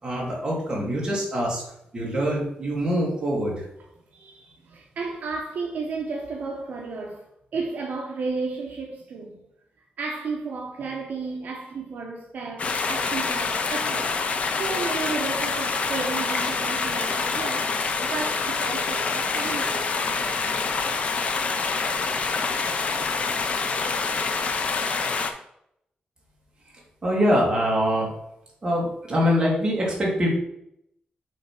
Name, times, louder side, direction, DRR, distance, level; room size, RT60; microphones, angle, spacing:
voice 1, 0.0-1.6 1.9-3.7 26.7-28.1 28.6-30.3, equal, 25° right, 2.1 m, -24 dB
voice 2, 4.1-7.3 7.5-9.4 10.0-14.2 14.6-20.6, right 4 dB, 65° right, 0.8 m, -33 dB
sound 1, 12.6-25.3, left 4 dB, 45° left, 0.6 m, -26 dB
6.5 x 3.3 x 5.7 m
wide cardioid pair, 175°, 3 cm